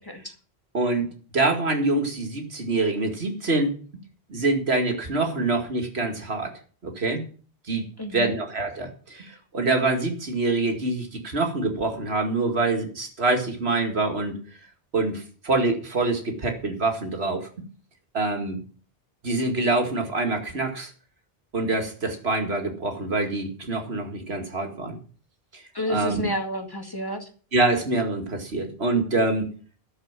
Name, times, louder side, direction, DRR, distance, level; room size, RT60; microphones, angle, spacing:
voice 1, 0.7-1.1 1.3-3.7 4.3-7.2 7.7-7.9 8.1-14.4 14.9-17.5 18.1-18.6 19.2-20.9 21.5-25.0 25.5-25.6 25.9-26.3 27.5-29.5, right 2 dB, 85° right, 4 dB, 2.5 m, -25 dB
voice 2, 8.0-8.4 25.7-27.3, equal, 20° left, 3 dB, 2.0 m, -30 dB
13.5 x 7.0 x 7.4 m, 0.41 s
omnidirectional pair, 1.0 m